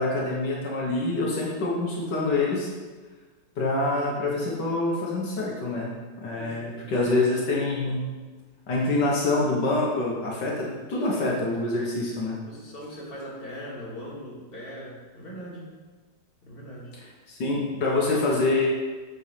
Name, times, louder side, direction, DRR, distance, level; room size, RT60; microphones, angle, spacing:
voice 1, 0.0-2.7 3.6-5.9 6.2-8.0 8.7-12.4 17.3-18.7, left 2 dB, 80° left, -3 dB, 2.1 m, -26 dB
voice 2, 6.3-7.4 8.9-9.2 10.7-11.2 12.5-15.7 16.4-17.0 18.5-18.6, equal, 30° left, -6 dB, 2.4 m, -41 dB
8.3 x 5.6 x 5.2 m, 1.4 s
omnidirectional pair, 1.8 m